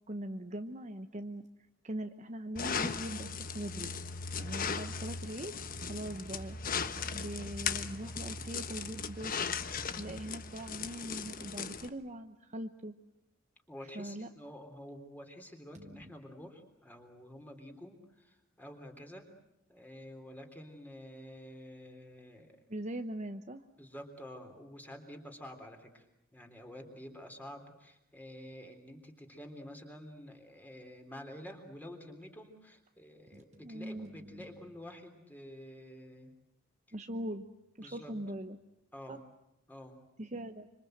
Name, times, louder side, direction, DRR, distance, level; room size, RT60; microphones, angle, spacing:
voice 1, 0.1-1.4 1.8-3.9 4.4-6.6 7.1-9.4 10.0-12.9 13.9-14.3 15.7-16.0 22.7-23.6 33.3-34.5 36.9-37.5 37.8-38.6 39.1-39.2 40.2-40.7, right 1 dB, 35° right, 7 dB, 1.0 m, -41 dB
sound 1, 2.6-11.9, left 5 dB, 40° left, 1.2 m, -38 dB
voice 2, 13.7-19.3 19.7-22.5 23.8-26.1 26.3-36.3 37.8-38.1 38.9-39.2 39.7-40.0, equal, 10° left, 5 dB, 3.6 m, -49 dB
26.0 x 26.0 x 8.0 m, 0.87 s
head